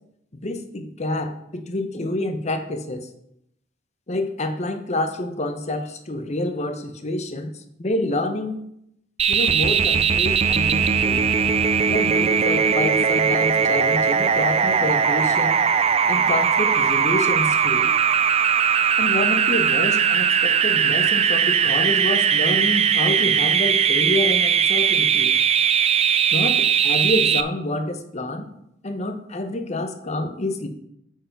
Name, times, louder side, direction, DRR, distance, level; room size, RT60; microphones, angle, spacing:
voice 1, 0.4-3.1 4.1-8.6 9.3-11.3 11.9-15.6 16.1-17.9 19.0-25.4 26.3-28.5 28.8-30.7, left 2 dB, 35° left, 7 dB, 0.8 m, -27 dB
sound 1, 9.2-27.4, right 7 dB, 30° right, 0.4 m, -19 dB
8.8 x 4.8 x 5.2 m, 0.76 s
head